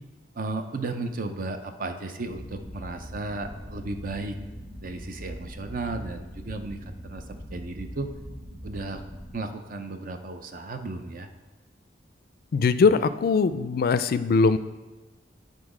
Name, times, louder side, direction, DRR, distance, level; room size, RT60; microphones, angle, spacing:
voice 1, 0.3-4.4 4.8-7.2 7.5-8.1 8.6-9.0 9.3-11.3, right 2 dB, 50° right, 7 dB, 0.6 m, -34 dB
sound 1, 2.3-9.3, equal, 35° right, 1.7 m, -41 dB
voice 2, 12.5-14.6, left 4 dB, 55° left, 13 dB, 0.3 m, -21 dB
9.3 x 3.9 x 4.9 m, 1.1 s
head